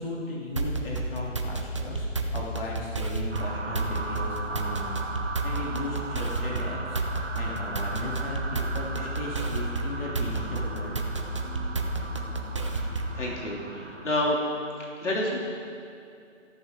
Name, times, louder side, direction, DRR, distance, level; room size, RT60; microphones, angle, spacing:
voice 1, 0.0-5.0 5.4-11.0, left 1 dB, 50° left, -4 dB, 3.1 m, -36 dB
sound 1, 0.6-13.2, right 2 dB, 25° right, 0.6 m, -31 dB
sound 2, 3.3-14.1, right 3 dB, 60° right, 2.0 m, -38 dB
voice 2, 13.1-14.4 15.0-15.4, left 1 dB, 65° left, -3 dB, 3.0 m, -28 dB
19.0 x 14.0 x 3.7 m, 2.4 s
hypercardioid pair, 165°, 38 cm